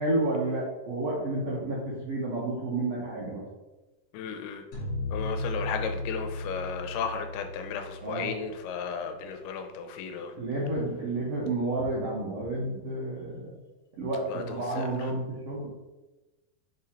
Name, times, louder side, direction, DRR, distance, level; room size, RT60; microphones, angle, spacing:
voice 1, 0.0-3.4 8.0-8.3 10.4-13.5 13.9-15.7, right 2 dB, 80° right, -5 dB, 1.3 m, -30 dB
voice 2, 4.1-4.6 5.1-10.3 14.3-14.9, left 6 dB, 85° left, 6 dB, 2.6 m, -34 dB
sound 1, 4.7-9.1, left 1 dB, 50° left, 2.5 m, -36 dB
6.1 x 3.8 x 4.4 m, 1.1 s
omnidirectional pair, 4.6 m